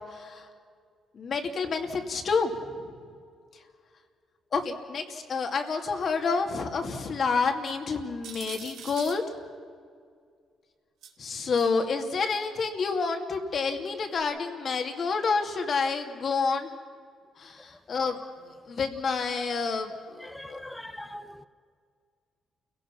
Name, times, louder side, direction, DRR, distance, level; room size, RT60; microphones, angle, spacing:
voice 1, 0.1-0.5 1.1-2.9 4.5-9.2 11.2-16.7 17.4-18.2 18.7-20.6, left 4 dB, 50° left, 4 dB, 2.4 m, -29 dB
sound 1, 8.2-9.2 11.0-11.7 12.4-12.5 14.2-14.3, right 8 dB, 85° right, 1.8 m, -44 dB
voice 2, 20.2-21.5, left 1 dB, 10° left, 12 dB, 1.1 m, -41 dB
29.0 x 17.0 x 5.9 m, 2.1 s
cardioid pair, 90°, 0 cm